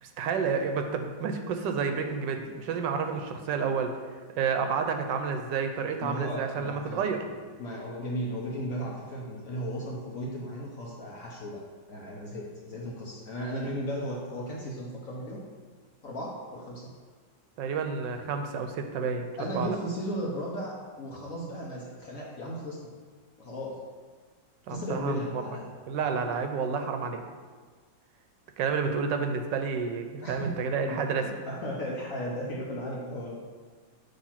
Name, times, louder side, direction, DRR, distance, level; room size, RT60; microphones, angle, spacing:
voice 1, 0.0-3.9 4.4-7.2 17.6-19.3 19.5-19.8 24.7-25.4 25.9-27.2 28.6-31.3, right 5 dB, 80° right, 6 dB, 1.3 m, -30 dB
voice 2, 6.0-7.3 7.6-11.6 11.9-15.4 16.0-16.9 19.4-22.8 23.4-23.7 24.7-25.7 30.2-30.5 30.8-33.4, equal, 55° left, -4 dB, 1.1 m, -35 dB
6.5 x 3.3 x 5.7 m, 1.5 s
omnidirectional pair, 2.0 m